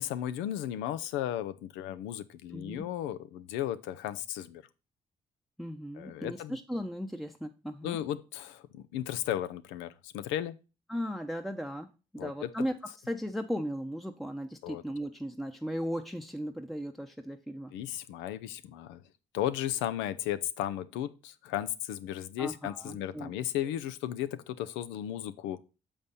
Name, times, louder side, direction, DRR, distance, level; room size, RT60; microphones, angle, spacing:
voice 1, 0.0-4.6 6.0-6.6 7.8-10.6 12.2-12.5 14.6-14.8 17.7-19.0 19.3-25.6, left 12 dB, 75° left, 0.5 m, -35 dB
voice 2, 2.5-2.8 5.6-8.0 10.9-12.8 13.1-17.7 22.4-23.3, equal, ahead, 0.8 m, -36 dB
7.2 x 5.2 x 4.1 m
hypercardioid pair, 40°, 19 cm